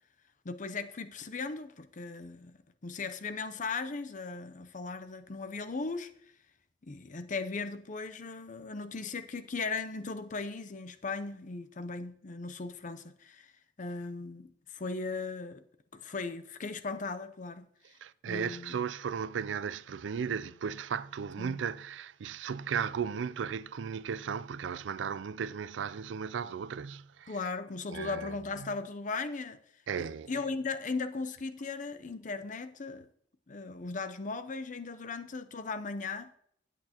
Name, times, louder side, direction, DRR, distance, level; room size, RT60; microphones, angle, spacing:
voice 1, 0.4-2.6 2.8-6.1 6.8-13.5 13.8-15.6 15.9-17.7 18.3-18.8 21.4-21.6 27.3-29.6 30.0-33.1 33.5-36.3, left 4 dB, 45° left, 0.6 m, -37 dB
voice 2, 18.0-27.4 27.9-28.7 29.9-30.3, right 7 dB, 80° right, 0.4 m, -36 dB
15.0 x 8.4 x 2.9 m
head